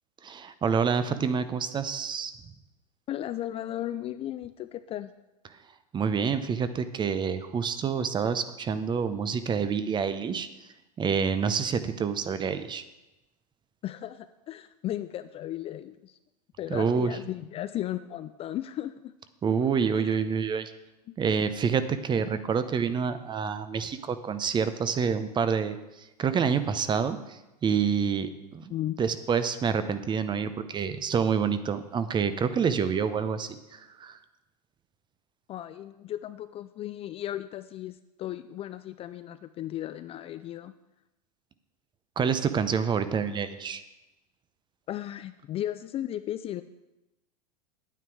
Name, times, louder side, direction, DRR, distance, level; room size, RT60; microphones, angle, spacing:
voice 1, 0.2-2.3 5.9-10.5 11.0-12.8 16.7-17.2 19.4-20.7 21.2-34.2 42.2-43.8, right 6 dB, 20° right, 12 dB, 0.7 m, -27 dB
voice 2, 3.1-5.1 13.8-16.2 16.6-19.1 19.9-20.2 21.1-21.2 22.3-22.4 28.7-29.0 35.5-40.7 44.9-46.6, left 12 dB, 30° left, 12 dB, 0.4 m, -35 dB
9.3 x 9.2 x 4.7 m, 0.97 s
hypercardioid pair, 105°, 21 cm